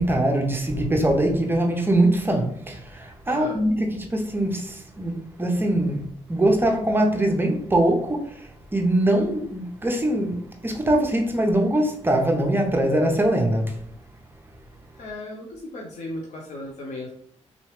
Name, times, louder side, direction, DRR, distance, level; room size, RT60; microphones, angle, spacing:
voice 1, 0.0-6.0 6.3-13.7, right 1 dB, 20° right, 0.7 m, -22 dB
voice 2, 3.3-3.6 15.0-17.1, left 1 dB, 80° left, 0.7 m, -35 dB
3.7 x 3.0 x 3.2 m
cardioid pair, 95°, 12 cm